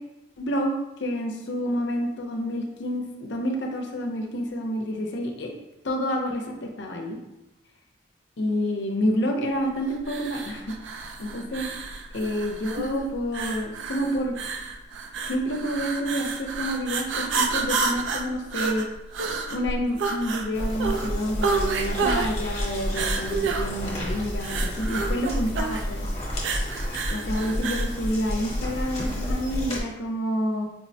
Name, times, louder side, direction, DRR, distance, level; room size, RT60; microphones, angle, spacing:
voice 1, 0.4-5.5 5.8-7.2 8.4-10.7 11.2-11.7 12.1-14.4 15.3-18.9 19.5-26.1 27.1-30.7, equal, 75° left, 2 dB, 0.5 m, -28 dB
sound 1, 10.0-28.0, right 4 dB, 80° right, 0.3 m, -30 dB
sound 2, 20.5-29.8, equal, 35° left, 0.8 m, -30 dB
4.6 x 2.0 x 2.6 m, 0.92 s
head